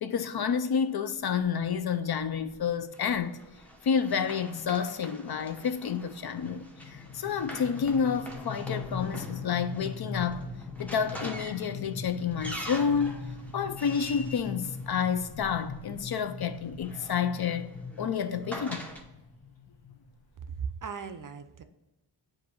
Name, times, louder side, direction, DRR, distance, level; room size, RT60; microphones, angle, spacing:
voice 1, 0.0-3.4 3.8-10.5 10.8-13.2 13.5-17.7 18.0-18.8, left 7 dB, 60° left, 0.5 m, -29 dB
sound 1, 2.5-2.6 3.0-3.1 3.4-3.7 4.1-20.5, left 5 dB, 35° left, 1.3 m, -41 dB
Run, 2.9-15.6 16.6-19.0, equal, 5° left, 0.7 m, -45 dB
voice 2, 20.5-21.6, right 6 dB, 45° right, 0.5 m, -37 dB
7.6 x 2.6 x 5.4 m
wide cardioid pair, 125°, 44 cm